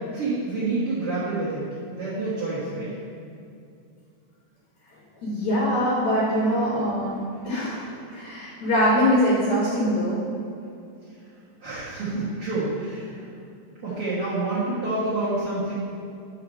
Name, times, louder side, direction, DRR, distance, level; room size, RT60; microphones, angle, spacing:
voice 1, 0.1-1.6 1.9-2.9 11.6-13.1 13.8-15.7, right 2 dB, 75° right, -11 dB, 1.3 m, -27 dB
voice 2, 5.2-7.1 7.4-10.2, equal, 70° left, -7 dB, 1.7 m, -23 dB
5.8 x 4.8 x 6.4 m, 2.5 s
omnidirectional pair, 4.9 m